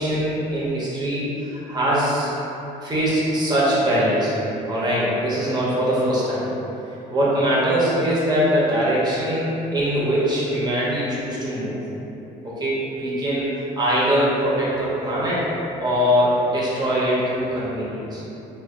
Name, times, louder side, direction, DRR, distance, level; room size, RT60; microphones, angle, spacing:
voice 1, 0.0-2.3 2.8-4.3 4.7-6.5 7.1-11.8 12.4-13.5 13.8-15.4 15.8-18.2, equal, 25° right, -8 dB, 1.1 m, -22 dB
2.7 x 2.6 x 3.8 m, 3.0 s
cardioid pair, 110°, 17 cm